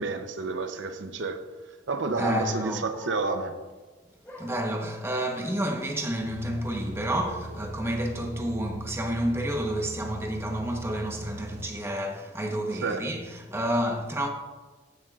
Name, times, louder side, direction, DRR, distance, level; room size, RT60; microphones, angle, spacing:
voice 1, 0.0-1.4 1.9-3.6 12.8-13.1, right 3 dB, 85° right, 0.7 m, -30 dB
voice 2, 2.1-2.8 4.4-14.3, right 1 dB, 15° right, 1.0 m, -30 dB
sound 1, 2.2-3.4 4.2-5.5 6.2-6.7 7.1-7.7 8.3-9.6 10.4-10.9, left 2 dB, 10° left, 2.1 m, -42 dB
sound 2, 6.2-11.7, right 2 dB, 45° right, 0.7 m, -41 dB
15.0 x 7.3 x 2.4 m
head